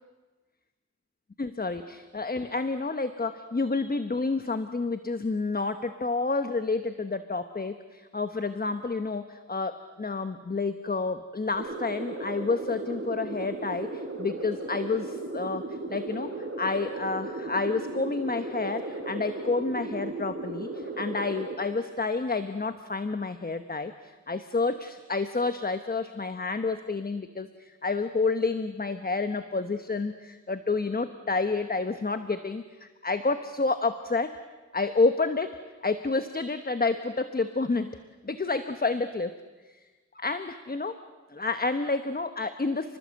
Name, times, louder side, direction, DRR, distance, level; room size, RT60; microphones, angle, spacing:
voice 1, 1.4-34.4 34.7-37.9 38.2-39.3 39.7-39.8 40.1-41.0 41.3-43.0, left 3 dB, 30° left, 9 dB, 1.1 m, -29 dB
sound 1, 11.5-21.5, right 2 dB, 45° right, 5.8 m, -36 dB
30.0 x 20.5 x 7.7 m, 1.3 s
wide cardioid pair, 90°, 30 cm